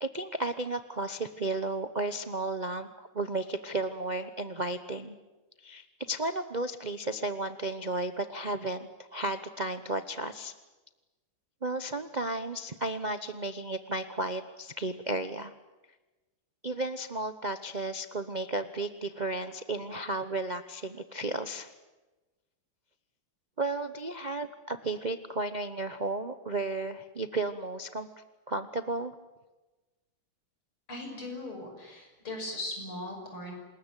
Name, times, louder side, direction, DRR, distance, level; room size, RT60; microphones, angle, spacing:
voice 1, 0.0-5.2 5.6-10.5 11.6-15.5 16.6-21.7 23.6-28.1 28.5-29.1, right 2 dB, 40° right, 9 dB, 0.6 m, -33 dB
voice 2, 30.9-33.5, left 2 dB, 80° left, 3 dB, 6.8 m, -39 dB
27.0 x 20.5 x 9.1 m, 1.1 s
omnidirectional pair, 2.3 m